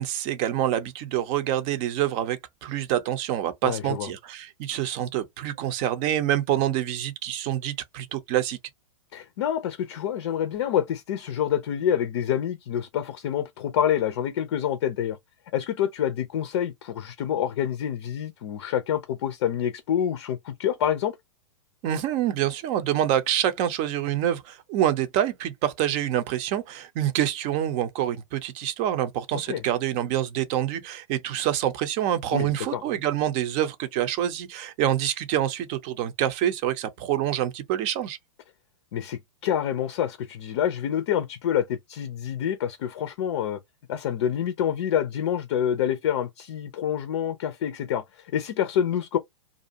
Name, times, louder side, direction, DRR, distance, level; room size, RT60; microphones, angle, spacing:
voice 1, 0.0-8.6 21.8-38.2, right 11 dB, 35° right, 0.7 m, -26 dB
voice 2, 3.6-4.1 9.1-15.2 15.5-21.2 29.5-29.6 32.3-32.8 38.9-43.6 43.9-49.2, left 9 dB, 50° left, 0.5 m, -27 dB
2.6 x 2.3 x 2.7 m
figure-of-eight pair, 110°, 17 cm